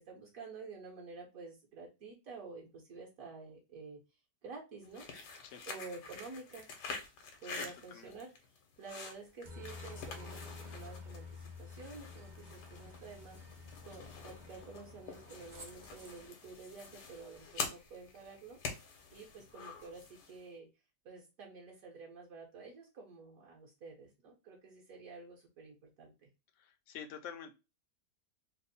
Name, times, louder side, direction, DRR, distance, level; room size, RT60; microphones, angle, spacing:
voice 1, 0.0-4.0 4.4-5.1 5.7-6.7 7.4-8.3 8.8-13.4 13.8-18.6 19.1-20.7 21.0-26.3, right 4 dB, 60° right, 0 dB, 1.3 m, -50 dB
sound 1, 4.8-20.4, left 4 dB, 80° left, 1.4 m, -47 dB
voice 2, 7.5-8.1 26.5-27.5, left 7 dB, 65° left, 7 dB, 0.8 m, -48 dB
Aircraft, 9.4-16.3, left 3 dB, 40° right, 0.8 m, -50 dB
3.4 x 2.1 x 3.9 m, 0.27 s
omnidirectional pair, 1.7 m